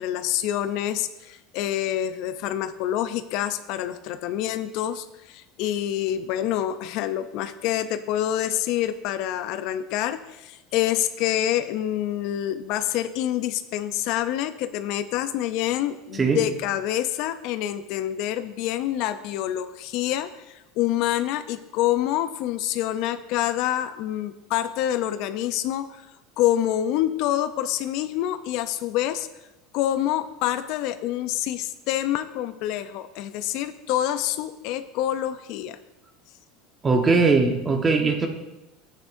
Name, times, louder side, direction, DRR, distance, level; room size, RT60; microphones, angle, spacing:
voice 1, 0.0-26.1 26.4-29.3 29.7-35.8, left 12 dB, 60° left, 11 dB, 0.5 m, -27 dB
voice 2, 36.8-38.3, right 4 dB, 25° right, 4 dB, 1.3 m, -20 dB
10.0 x 9.1 x 2.6 m, 0.97 s
supercardioid pair, 110°, 0 cm